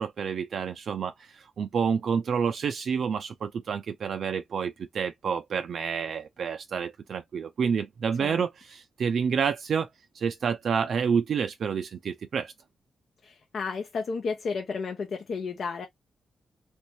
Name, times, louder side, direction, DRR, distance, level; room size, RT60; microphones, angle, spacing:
voice 1, 0.0-9.9 10.1-12.5, right 6 dB, 65° right, 0.4 m, -29 dB
voice 2, 13.2-15.9, left 5 dB, 60° left, 0.7 m, -32 dB
3.2 x 2.7 x 3.0 m
cardioid pair, 95°, 0 cm